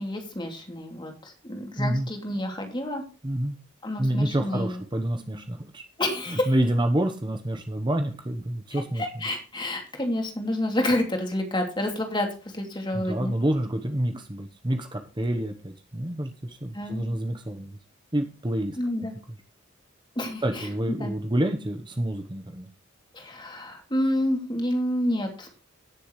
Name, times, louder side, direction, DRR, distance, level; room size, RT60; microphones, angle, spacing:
voice 1, 0.0-3.0 3.8-4.8 6.0-6.5 8.7-12.3 12.5-13.3 16.7-17.1 18.8-19.1 20.2-20.7 21.0-21.1 23.1-25.6, left 1 dB, 20° left, 3 dB, 2.8 m, -29 dB
voice 2, 1.8-2.1 3.2-3.6 4.0-5.9 6.3-9.2 12.9-17.8 18.1-19.1 20.4-22.7, right 1 dB, 20° right, 5 dB, 1.0 m, -28 dB
17.0 x 7.1 x 3.1 m, 0.35 s
head